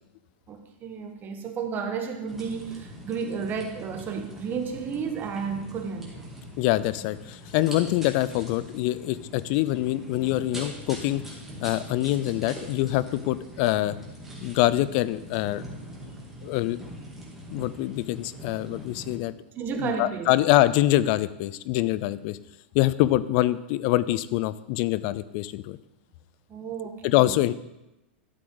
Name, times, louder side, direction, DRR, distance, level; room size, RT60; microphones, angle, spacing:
voice 1, 0.5-6.3 19.5-20.3 26.5-27.4, right 6 dB, 30° right, 5 dB, 1.4 m, -32 dB
sound 1, 2.3-19.2, equal, 5° right, 2.8 m, -42 dB
voice 2, 6.6-11.2 11.6-14.0 14.4-15.7 16.4-16.8 17.5-19.3 19.8-22.4 22.7-25.8 27.0-27.5, left 15 dB, 50° left, 17 dB, 0.5 m, -25 dB
12.0 x 7.7 x 3.9 m, 0.96 s
hypercardioid pair, 120°, 6 cm